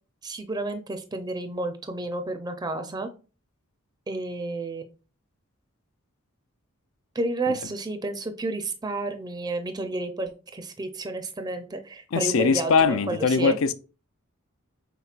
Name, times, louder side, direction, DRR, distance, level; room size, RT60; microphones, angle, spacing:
voice 1, 0.2-3.1 4.1-4.9 7.1-12.7 13.1-13.6, right 2 dB, 20° right, 0.4 m, -31 dB
voice 2, 12.1-13.7, left 5 dB, 70° left, 0.5 m, -21 dB
5.7 x 3.8 x 2.4 m
head